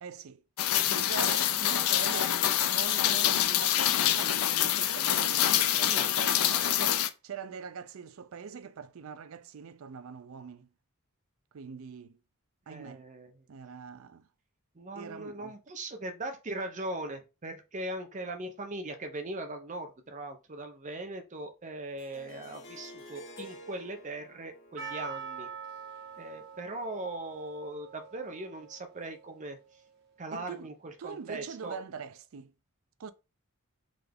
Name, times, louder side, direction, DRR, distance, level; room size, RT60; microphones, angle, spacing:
voice 1, 0.0-0.4 0.8-2.4 2.6-10.7 11.5-12.2 12.7-13.1 13.5-14.3 14.9-15.5 30.3-30.7 31.0-32.5 33.0-33.1, right 6 dB, 70° right, 0.4 m, -43 dB
Rain, 0.6-7.1, left 11 dB, 85° left, 0.4 m, -26 dB
voice 2, 5.5-6.1 12.7-13.4 14.8-25.5 26.2-29.6 30.2-31.8, right 2 dB, 35° right, 0.7 m, -40 dB
Harp, 22.0-26.9, left 1 dB, 60° left, 0.9 m, -51 dB
Percussion, 24.8-29.7, right 6 dB, 50° right, 1.4 m, -45 dB
3.8 x 3.4 x 3.5 m
head